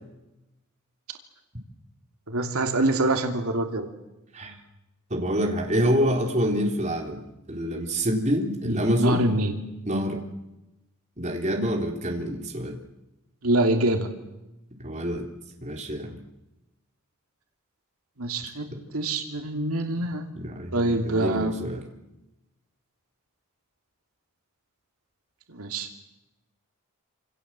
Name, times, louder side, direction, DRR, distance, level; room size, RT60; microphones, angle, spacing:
voice 1, 2.3-3.9 8.6-9.5 13.4-14.1 18.2-18.7 18.9-20.2 20.7-21.5 25.5-25.9, right 2 dB, 80° right, 4 dB, 2.9 m, -25 dB
voice 2, 5.1-7.2 7.5-9.3 9.9-10.2 11.2-12.8 14.8-15.3 15.6-16.2 20.4-21.8, equal, 30° right, 1 dB, 3.8 m, -26 dB
27.5 x 27.5 x 7.6 m, 0.96 s
head